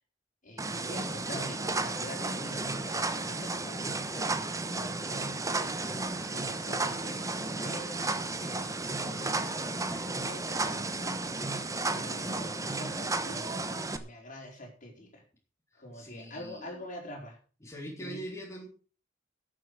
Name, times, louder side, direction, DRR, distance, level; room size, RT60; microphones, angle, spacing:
voice 1, 0.4-3.8 4.7-5.7 6.3-9.6 9.9-10.9 11.9-13.4 14.0-15.2 15.7-17.4 18.0-18.2, left 1 dB, 45° left, 1 dB, 4.8 m, -45 dB
sound 1, 0.6-14.0, right 3 dB, 15° right, 1.1 m, -33 dB
voice 2, 4.1-4.4 9.9-10.2 15.9-16.8 17.6-18.7, equal, 15° left, -3 dB, 3.8 m, -43 dB
12.5 x 7.8 x 6.4 m, 0.38 s
head